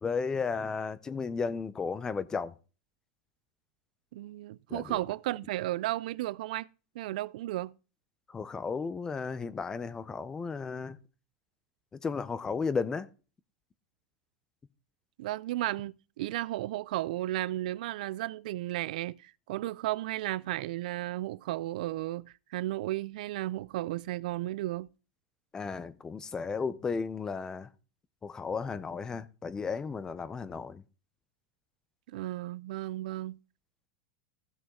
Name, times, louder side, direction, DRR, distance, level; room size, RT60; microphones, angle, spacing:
voice 1, 0.0-2.5 4.7-5.0 8.3-11.0 11.9-13.1 25.5-27.7 28.2-30.8, left 5 dB, 15° left, 0.5 m, -34 dB
voice 2, 4.1-6.7 7.0-7.7 15.2-24.9 32.1-33.4, right 16 dB, 70° right, 0.4 m, -34 dB
15.5 x 6.2 x 3.7 m
supercardioid pair, 155°, 4 cm